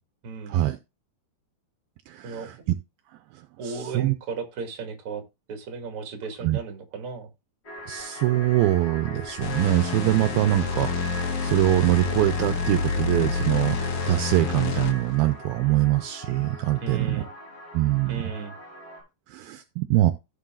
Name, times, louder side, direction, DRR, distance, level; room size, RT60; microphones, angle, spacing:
voice 1, 0.2-0.6 2.2-2.5 3.6-5.2 5.5-7.3 10.4-10.8 16.8-17.3 18.1-18.6, right 5 dB, 40° right, 2.4 m, -35 dB
voice 2, 2.1-2.5 3.3-4.1 6.4-6.6 7.9-13.8 14.1-17.2 17.7-18.2 19.3-20.1, right 15 dB, 80° right, 2.4 m, -23 dB
sound 1, 7.6-19.0, left 1 dB, 25° left, 5.3 m, -40 dB
sound 2, 9.4-15.2, left 5 dB, 70° left, 3.2 m, -28 dB
15.5 x 6.9 x 2.4 m
omnidirectional pair, 4.5 m